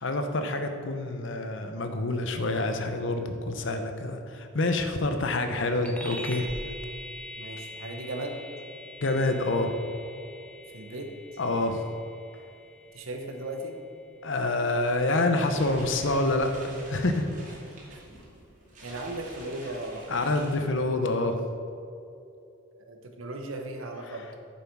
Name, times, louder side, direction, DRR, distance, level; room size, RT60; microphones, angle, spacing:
voice 1, 0.0-6.5 9.0-9.7 11.4-11.8 14.2-16.5 16.9-17.2 20.1-21.4, left 2 dB, 65° left, 6 dB, 0.8 m, -27 dB
sound 1, 5.8-15.7, left 1 dB, 5° left, 0.9 m, -44 dB
voice 2, 7.4-8.4 10.7-11.1 12.9-13.8 17.9-18.0 18.8-20.4 22.8-24.4, right 1 dB, 85° right, 3 dB, 1.2 m, -37 dB
sound 2, 15.1-21.1, right 1 dB, 40° right, 2.4 m, -47 dB
9.6 x 7.1 x 4.7 m, 2.6 s
head